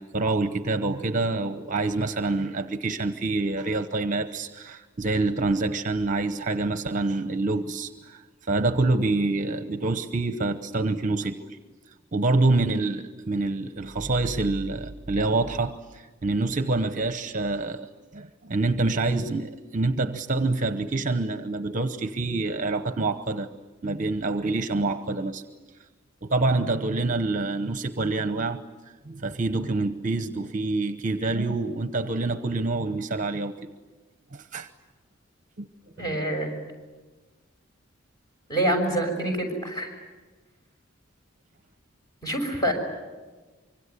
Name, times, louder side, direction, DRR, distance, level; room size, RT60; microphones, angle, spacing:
voice 1, 0.0-8.2 8.5-11.4 12.1-23.5 23.8-25.4 26.2-28.6 29.1-33.6 34.3-34.7 35.6-35.7 36.0-36.2, right 2 dB, 40° right, 0.9 m, -26 dB
voice 2, 36.0-36.5 38.5-39.9 42.2-42.7, right 1 dB, 20° left, 6.0 m, -26 dB
25.0 x 24.5 x 9.7 m
head